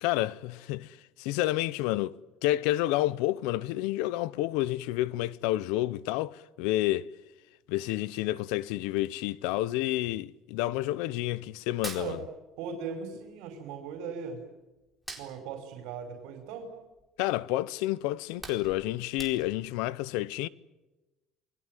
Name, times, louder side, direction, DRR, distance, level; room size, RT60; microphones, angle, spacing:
voice 1, 0.0-7.1 7.7-12.2 17.2-20.5, left 16 dB, 85° left, 0.9 m, -30 dB
Hands, 11.7-12.9 13.2-14.5 14.9-17.2 17.6-17.8 18.1-19.8, right 2 dB, ahead, 4.4 m, -45 dB
voice 2, 12.6-14.4 15.2-16.7, right 6 dB, 75° right, 5.2 m, -38 dB
28.0 x 21.0 x 9.2 m
cardioid pair, 145°, 0 cm